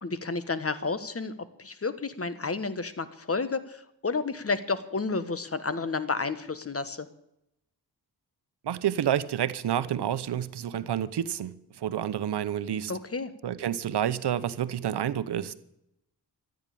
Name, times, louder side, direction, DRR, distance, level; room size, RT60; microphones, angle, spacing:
voice 1, 0.0-7.1 12.9-13.3, left 4 dB, 35° left, 1.4 m, -31 dB
voice 2, 8.6-12.9 13.4-15.5, right 10 dB, 80° right, 0.9 m, -29 dB
14.0 x 9.0 x 8.6 m
cardioid pair, 65°, 40 cm